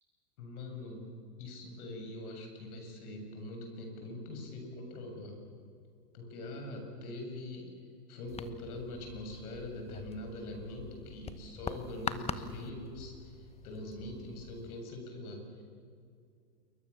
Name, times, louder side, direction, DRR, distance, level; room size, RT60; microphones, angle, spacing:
voice 1, 0.4-5.4 6.1-7.7 8.1-15.6, left 1 dB, 70° left, 3 dB, 7.8 m, -43 dB
sound 1, 8.3-14.8, left 5 dB, 15° left, 1.1 m, -44 dB
28.5 x 22.5 x 7.2 m, 2.3 s
hypercardioid pair, 110°, 46 cm